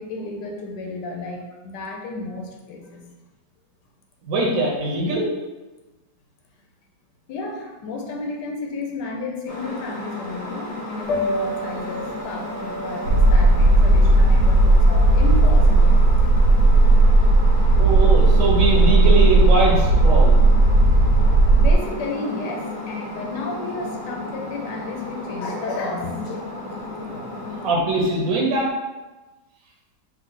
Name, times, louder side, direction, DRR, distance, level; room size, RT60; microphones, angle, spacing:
voice 1, 0.0-3.0 7.3-16.0 21.6-26.9, left 2 dB, 85° left, 0 dB, 1.3 m, -32 dB
voice 2, 4.2-5.3 17.8-20.4 27.1-28.7, right 2 dB, 60° right, -3 dB, 1.1 m, -22 dB
sound 1, 9.5-27.7, left 2 dB, 30° left, 0.8 m, -34 dB
Piano, 11.0-17.0, equal, 55° left, 0.9 m, -32 dB
sound 2, 13.1-21.7, right 2 dB, 90° right, 1.2 m, -15 dB
3.3 x 3.1 x 3.8 m, 1.2 s
omnidirectional pair, 1.8 m